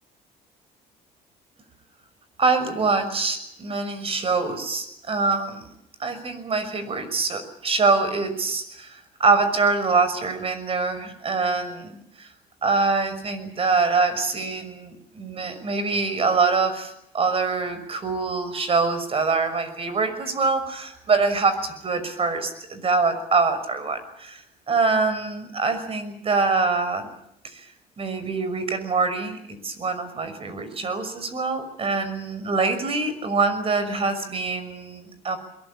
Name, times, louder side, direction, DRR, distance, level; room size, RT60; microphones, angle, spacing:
voice 1, 2.4-5.7 6.0-12.3 12.6-27.1 27.4-27.7 28.0-35.4, right 4 dB, 35° right, 11 dB, 6.0 m, -24 dB
23.5 x 23.0 x 8.7 m, 0.75 s
cardioid pair, 100°, 16 cm